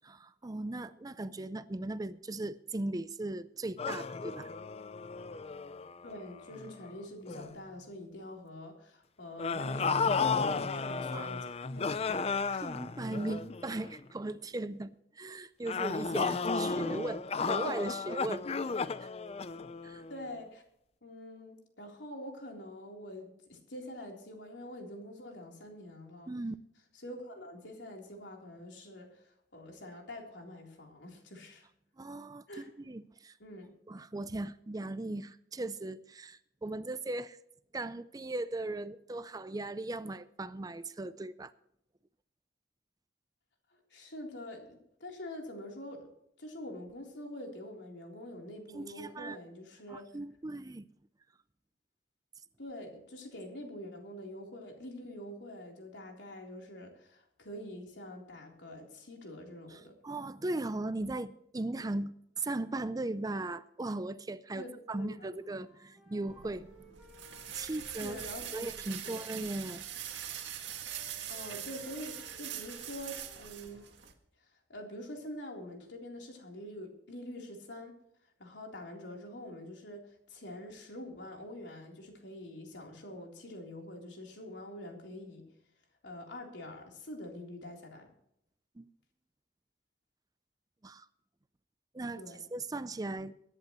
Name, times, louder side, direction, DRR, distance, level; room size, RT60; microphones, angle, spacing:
voice 1, 0.0-4.5 11.1-11.3 12.6-18.5 19.0-19.1 19.8-20.0 26.3-26.6 32.0-33.4 33.9-37.4 37.7-41.5 48.7-49.4 49.9-50.9 59.7-66.9 67.5-68.2 68.5-69.9 88.8-88.9 90.8-91.1 91.9-92.2 92.5-93.4, right 2 dB, 20° right, 0.5 m, -38 dB
sound 1, 3.8-6.9 7.3-7.6 9.4-14.0 15.7-20.2, left 4 dB, 35° left, 0.5 m, -34 dB
voice 2, 6.0-11.4 11.7-12.7 20.1-20.6 21.0-26.3 26.9-31.7 32.5-32.7 33.4-33.7 43.7-46.1 46.4-50.1 52.6-60.0 64.5-65.4 68.0-68.7 69.0-69.2 71.3-73.9 74.7-77.9 78.4-85.5 86.0-88.1 92.2-92.4, left 1 dB, 80° left, 3.6 m, -45 dB
Wind instrument woodwind instrument, 65.4-73.9, equal, ahead, 5.7 m, -60 dB
sound 2, 66.3-74.1, right 10 dB, 90° right, 1.9 m, -43 dB
23.0 x 11.0 x 3.1 m
head